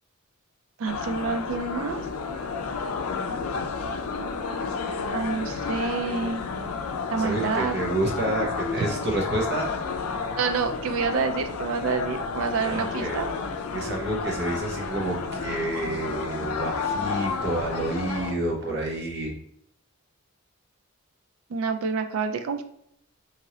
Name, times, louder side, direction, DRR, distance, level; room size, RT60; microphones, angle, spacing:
voice 1, 0.8-2.0 5.1-6.4 7.1-7.8 8.8-8.9 10.4-13.3 21.5-22.6, right 5 dB, 70° right, 7 dB, 0.3 m, -28 dB
sound 1, 0.9-18.3, left 4 dB, 90° left, 0.4 m, -31 dB
voice 2, 7.1-9.7 12.6-13.1 13.7-19.4, right 1 dB, 50° right, -1 dB, 0.8 m, -29 dB
2.9 x 2.6 x 2.8 m, 0.71 s
head